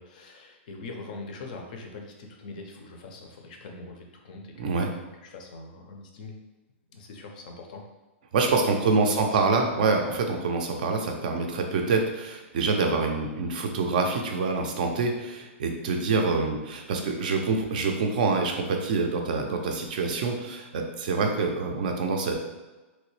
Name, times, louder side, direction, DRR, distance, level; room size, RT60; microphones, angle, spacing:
voice 1, 0.0-4.8 5.2-6.4 6.9-7.8 8.8-9.5, left 3 dB, 40° left, 2 dB, 0.5 m, -42 dB
voice 2, 4.6-4.9 8.3-22.3, right 4 dB, 40° right, 3 dB, 0.4 m, -26 dB
3.2 x 2.9 x 3.1 m, 1.2 s
hypercardioid pair, 175°, 7 cm